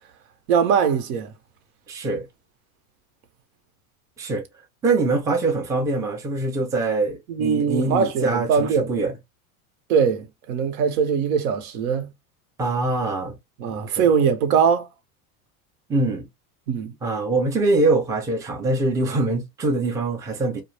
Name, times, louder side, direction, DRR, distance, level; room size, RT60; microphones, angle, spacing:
voice 1, 0.5-1.3 7.3-8.9 9.9-12.1 13.6-14.9 16.7-16.9, right 6 dB, 80° right, 0.8 m, -21 dB
voice 2, 1.9-2.3 4.2-4.4 4.8-9.1 12.6-13.4 13.7-14.1 15.9-16.3 17.0-20.6, right 2 dB, 10° right, 0.4 m, -23 dB
2.3 x 2.0 x 3.1 m
supercardioid pair, 125°, 42 cm